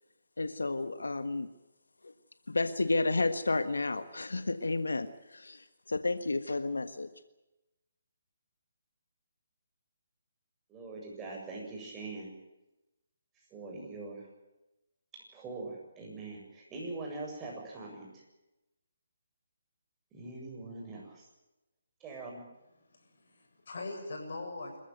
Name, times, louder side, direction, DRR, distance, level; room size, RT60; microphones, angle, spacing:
voice 1, 0.4-1.5 2.0-2.1 2.5-7.1, left 3 dB, 90° left, 11 dB, 1.5 m, -31 dB
voice 2, 10.7-12.3 13.5-14.3 15.1-18.1 20.1-21.2 22.0-22.4, right 3 dB, 15° right, -1 dB, 7.7 m, -42 dB
voice 3, 22.9-24.8, left 2 dB, 65° left, 2 dB, 7.8 m, -41 dB
26.5 x 15.0 x 9.3 m, 0.98 s
hypercardioid pair, 150°, 0 cm